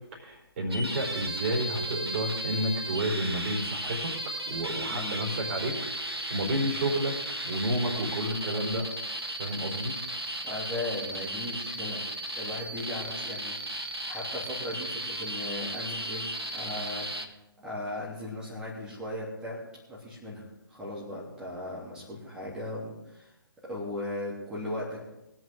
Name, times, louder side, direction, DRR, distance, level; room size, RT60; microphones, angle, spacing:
voice 1, 0.1-4.1 4.5-7.1 7.4-8.9 9.4-9.9, equal, 30° right, -1 dB, 3.9 m, -30 dB
sound 1, 0.7-17.3, right 1 dB, 80° right, 1.8 m, -35 dB
voice 2, 4.9-5.2 10.4-12.0 12.4-19.6 19.9-23.3 23.6-25.0, left 1 dB, 5° right, -6 dB, 3.3 m, -37 dB
23.0 x 7.7 x 3.8 m, 0.94 s
figure-of-eight pair, 145°, 13 cm